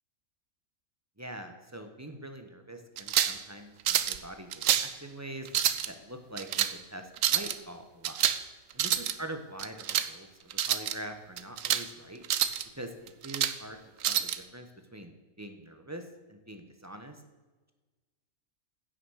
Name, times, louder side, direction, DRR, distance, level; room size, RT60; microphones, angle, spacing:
voice 1, 1.2-5.5 5.9-8.2 8.7-12.2 12.8-13.8 14.0-15.1 15.4-17.2, right 1 dB, 15° right, 6 dB, 1.0 m, -44 dB
sound 1, 3.0-3.4 3.9-4.2 4.5-4.9 5.5-5.9 6.4-6.7 7.2-7.5 8.0-8.4 8.7-9.1 9.6-10.1 10.5-11.0 11.4-11.9 12.2-12.6 13.1-13.6 14.0-14.4, right 10 dB, 70° right, 1.0 m, -27 dB
16.0 x 6.5 x 6.4 m, 1.3 s
omnidirectional pair, 1.5 m